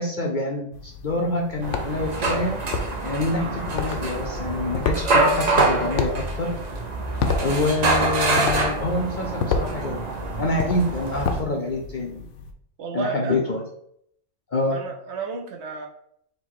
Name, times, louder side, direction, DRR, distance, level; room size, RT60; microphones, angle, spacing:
voice 1, 0.0-2.6 3.0-6.5 7.4-10.1 10.4-12.2 12.9-13.6 14.5-14.8, left 2 dB, 50° left, 0 dB, 0.6 m, -26 dB
sound 1, 0.7-12.5, left 4 dB, 70° left, 0.9 m, -32 dB
sound 2, 1.6-11.4, right 2 dB, 45° right, 0.6 m, -25 dB
voice 2, 12.8-13.4 14.7-15.9, right 5 dB, 65° right, 2 dB, 0.9 m, -32 dB
3.9 x 2.9 x 4.5 m, 0.69 s
omnidirectional pair, 1.4 m